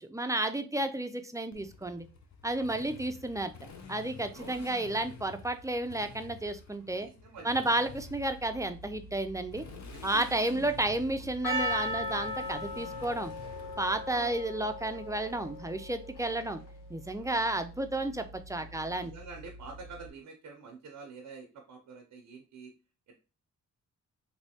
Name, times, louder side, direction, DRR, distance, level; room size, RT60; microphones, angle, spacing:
voice 1, 0.0-2.1 2.4-3.5 3.9-7.1 7.4-9.6 10.0-13.3 13.8-16.6 16.9-19.1, right 2 dB, 10° right, 8 dB, 0.4 m, -32 dB
Motorcycle, 1.5-14.4, left 5 dB, 60° left, 0.7 m, -50 dB
voice 2, 4.3-4.7 6.8-7.5 9.7-10.1 14.1-14.4 17.1-17.3 18.5-22.7 23.1-23.2, right 4 dB, 80° right, 2 dB, 0.7 m, -48 dB
sound 1, 7.9-20.1, equal, 30° left, 1.4 m, -50 dB
Percussion, 11.4-16.7, equal, 90° left, 0.9 m, -37 dB
3.2 x 2.7 x 2.8 m, 0.32 s
cardioid pair, 60°, 31 cm